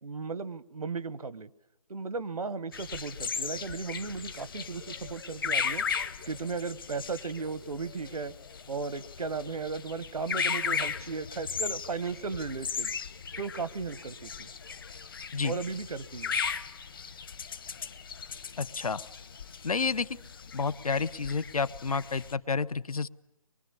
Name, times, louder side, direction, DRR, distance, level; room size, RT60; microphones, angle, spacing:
voice 1, 0.0-1.5 1.9-5.8 6.3-8.3 8.7-12.9 13.4-14.5 15.4-16.4, right 4 dB, 75° right, 17 dB, 1.1 m, -36 dB
sound 1, 2.7-22.3, left 6 dB, 35° left, 1.1 m, -37 dB
voice 2, 18.6-19.0 19.6-20.1 20.5-23.1, left 5 dB, 75° left, 15 dB, 1.0 m, -30 dB
24.0 x 23.0 x 9.7 m, 0.87 s
hypercardioid pair, 170°, 19 cm